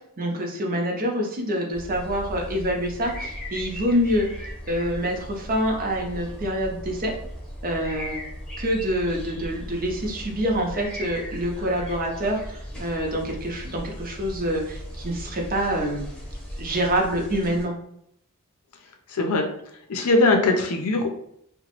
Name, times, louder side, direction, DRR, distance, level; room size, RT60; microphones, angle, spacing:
voice 1, 0.2-4.3 4.7-7.1 7.6-8.2 8.6-16.0 16.6-17.7, equal, 40° right, 1 dB, 0.6 m, -26 dB
sound 1, 1.7-17.7, equal, 5° left, 0.8 m, -37 dB
voice 2, 19.1-19.5 19.9-21.2, left 2 dB, 70° left, 3 dB, 0.5 m, -21 dB
2.9 x 2.1 x 2.9 m, 0.72 s
head